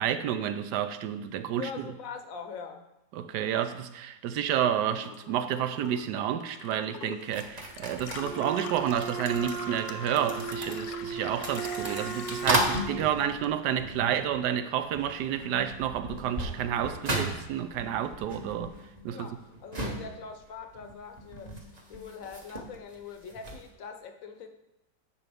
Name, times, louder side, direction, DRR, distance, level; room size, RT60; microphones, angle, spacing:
voice 1, 0.0-1.9 3.1-18.7 19.0-19.3, right 9 dB, 75° right, 1.2 m, -30 dB
voice 2, 1.5-2.9 19.1-24.5, left 6 dB, 60° left, 1.1 m, -43 dB
Gurgling / Water tap faucet / Sink (filling or washing), 4.4-14.0 14.3-15.2, left 8 dB, 90° left, 1.3 m, -44 dB
sound 1, 7.3-14.6 14.9-23.7, right 1 dB, 30° right, 0.9 m, -36 dB
Wind instrument woodwind instrument, 8.2-13.1, right 7 dB, 50° right, 1.2 m, -37 dB
10.0 x 6.7 x 3.5 m
omnidirectional pair, 1.9 m